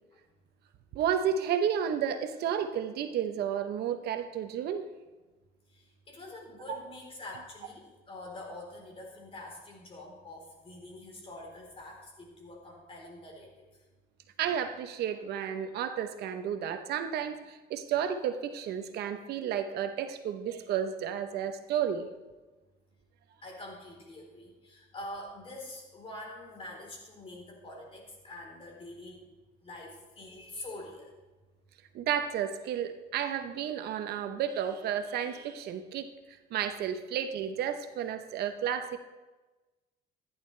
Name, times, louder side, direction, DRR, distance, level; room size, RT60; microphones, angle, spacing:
voice 1, 0.9-4.9 14.4-22.1 31.9-36.1 36.5-39.0, right 8 dB, 70° right, 8 dB, 0.9 m, -32 dB
voice 2, 5.7-13.7 23.4-29.2 29.6-31.1, left 1 dB, 35° left, 0 dB, 3.7 m, -45 dB
14.5 x 10.5 x 3.3 m, 1.2 s
cardioid pair, 110°, 17 cm